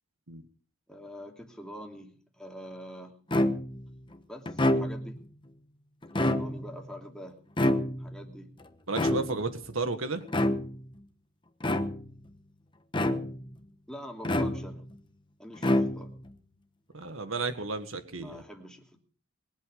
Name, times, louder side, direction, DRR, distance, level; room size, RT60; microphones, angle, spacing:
voice 1, 0.9-3.1 4.3-5.2 6.2-7.4 8.0-8.5 13.9-14.9 15.4-16.1 18.1-19.0, equal, 5° left, 1 dB, 2.9 m, -45 dB
sound 1, 3.3-3.9 4.4-5.2 6.0-6.8 7.6-8.2 8.9-9.6 10.3-10.8 11.6-12.2 12.9-13.5 14.2-14.9 15.6-16.3, left 1 dB, 25° left, 1.1 m, -27 dB
voice 2, 8.9-10.2 16.9-18.4, right 3 dB, 90° right, 9 dB, 1.7 m, -33 dB
22.0 x 8.2 x 6.9 m, 0.43 s
head